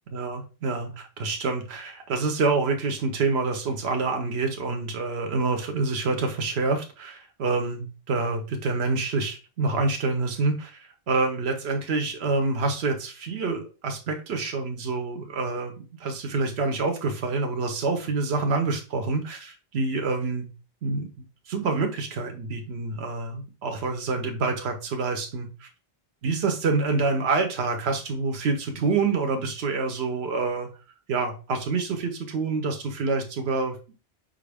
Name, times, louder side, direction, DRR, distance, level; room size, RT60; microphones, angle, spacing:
voice 1, 0.1-15.7 16.0-20.5 20.8-21.1 21.5-25.7 26.2-30.7 31.1-33.8, right 3 dB, 90° right, 4 dB, 1.0 m, -27 dB
5.3 x 2.5 x 3.3 m, 0.32 s
omnidirectional pair, 1.0 m